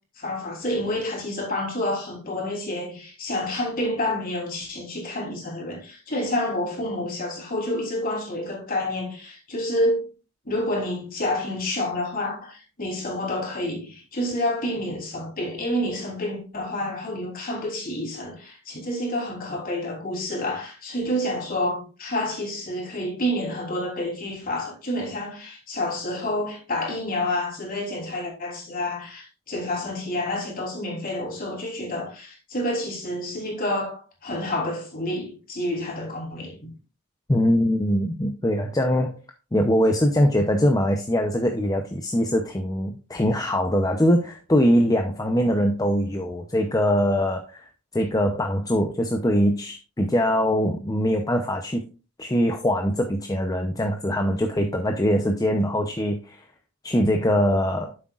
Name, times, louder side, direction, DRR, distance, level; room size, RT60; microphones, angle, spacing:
voice 1, 0.2-10.1 10.4-36.7, left 1 dB, 40° left, 3.3 m, -29 dB
voice 2, 37.3-39.2 39.5-51.8 52.2-56.4 56.8-57.9, equal, 15° left, 0.6 m, -22 dB
9.9 x 7.7 x 2.4 m
head